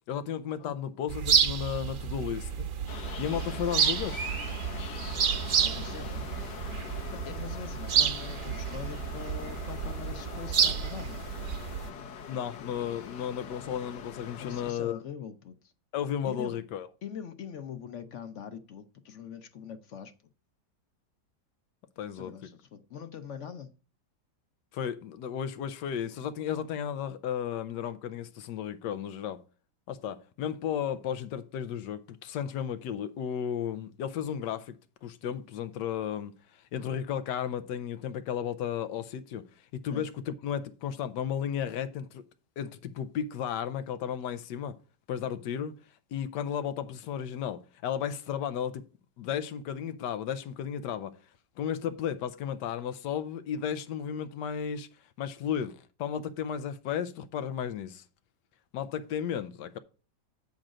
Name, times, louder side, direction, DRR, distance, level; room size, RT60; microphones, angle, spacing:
voice 1, 0.1-2.7 3.2-4.2 12.3-15.0 15.9-16.9 22.0-22.3 24.7-29.4 29.9-34.7 35.0-39.5 39.7-42.2 42.6-44.8 45.1-45.7 46.1-48.8 49.2-51.2 51.6-54.9 55.2-58.0 58.7-59.8, left 8 dB, 90° left, 1.3 m, -34 dB
sound 1, 1.1-11.9, right 7 dB, 55° right, 1.1 m, -30 dB
sound 2, 2.9-14.7, left 7 dB, 75° left, 1.4 m, -43 dB
voice 2, 5.6-6.3 7.1-11.2 14.4-15.6 16.2-16.6 17.0-20.1 22.1-23.7 39.9-40.0, left 8 dB, 55° left, 0.9 m, -42 dB
8.7 x 3.9 x 6.2 m
omnidirectional pair, 1.8 m